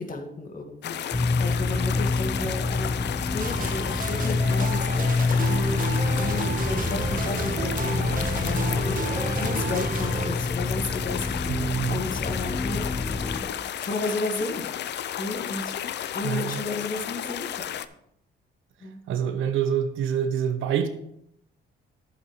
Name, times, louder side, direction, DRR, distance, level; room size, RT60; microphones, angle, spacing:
voice 1, 0.0-11.6 11.9-13.5 13.8-14.7 15.2-15.7 16.1-17.6 18.8-19.0, left 2 dB, 45° left, 1.9 m, -33 dB
sound 1, 0.8-17.9, left 10 dB, 60° left, 0.5 m, -33 dB
sound 2, 1.1-13.4, left 3 dB, 15° left, 0.8 m, -27 dB
sound 3, 3.4-10.3, right 4 dB, 45° right, 1.1 m, -33 dB
voice 2, 11.5-12.0 16.2-16.6 19.1-20.9, right 8 dB, 85° right, 1.0 m, -26 dB
10.5 x 8.0 x 3.2 m
cardioid pair, 90°, 20 cm